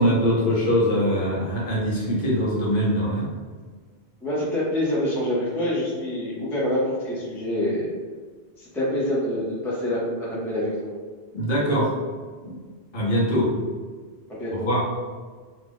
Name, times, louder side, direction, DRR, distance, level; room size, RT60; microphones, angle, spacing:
voice 1, 0.0-3.3 11.3-11.9 12.4-12.6 12.9-13.5 14.7-14.8, equal, 55° left, -5 dB, 0.9 m, -22 dB
voice 2, 4.2-7.9 8.6-10.9 14.3-14.7, left 1 dB, 5° left, -7 dB, 0.5 m, -26 dB
2.6 x 2.4 x 3.4 m, 1.5 s
omnidirectional pair, 1.2 m